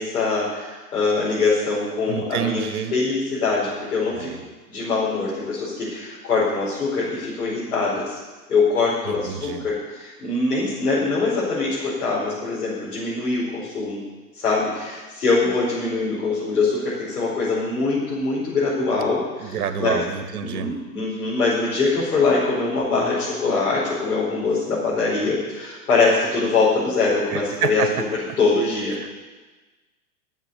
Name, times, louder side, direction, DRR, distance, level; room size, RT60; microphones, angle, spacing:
voice 1, 0.0-2.6 2.9-4.3 4.7-8.2 8.5-14.0 14.3-20.0 20.4-27.8 28.4-29.0, left 3 dB, 75° left, -9 dB, 5.0 m, -23 dB
voice 2, 2.1-2.9 4.1-4.4 9.0-9.7 19.0-19.1 19.4-20.7 27.3-27.9 28.3-28.4 29.0-29.1, right 8 dB, 70° right, 10 dB, 1.3 m, -28 dB
11.0 x 7.3 x 8.3 m, 1.3 s
hypercardioid pair, 115°, 46 cm